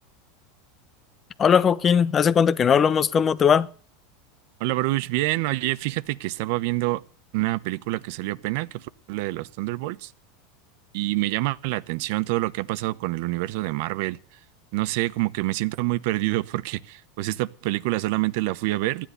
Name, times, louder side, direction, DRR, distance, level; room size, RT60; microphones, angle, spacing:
voice 1, 1.4-3.7, left 7 dB, 30° left, 0.9 m, -19 dB
voice 2, 4.6-7.0 7.3-10.1 10.9-14.2 14.7-19.1, right 19 dB, 65° right, 0.9 m, -27 dB
15.0 x 10.5 x 6.7 m
supercardioid pair, 120°, 0 cm